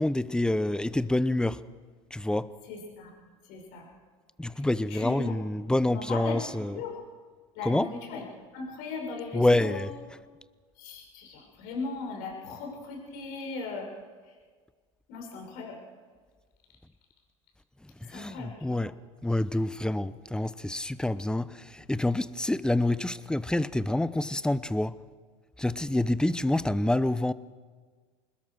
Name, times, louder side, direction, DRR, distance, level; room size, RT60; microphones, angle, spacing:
voice 1, 0.0-1.6 2.1-2.5 4.4-6.8 7.6-7.9 9.3-9.9 17.8-18.9 19.2-25.0 25.6-27.3, left 1 dB, 5° left, 0.8 m, -27 dB
voice 2, 2.7-3.1 3.5-3.9 4.5-5.3 5.9-6.4 6.7-7.0 7.5-8.2 8.5-9.9 10.8-13.9 14.2-14.3 15.1-15.8 18.1-18.8, left 4 dB, 65° left, 6.3 m, -38 dB
25.5 x 20.5 x 6.4 m
hypercardioid pair, 90°, 17 cm